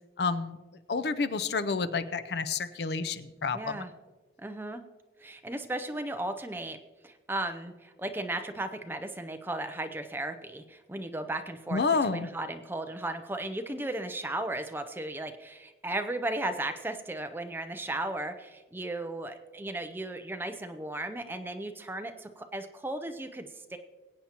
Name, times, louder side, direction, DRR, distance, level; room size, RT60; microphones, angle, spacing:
voice 1, 0.2-0.6 0.9-3.8 11.7-12.3, left 4 dB, 65° left, 12 dB, 0.5 m, -29 dB
voice 2, 3.5-3.9 4.4-4.8 5.2-6.8 7.0-11.8 12.1-23.8, right 2 dB, 10° right, 7 dB, 0.5 m, -35 dB
22.0 x 8.6 x 2.9 m, 1.3 s
head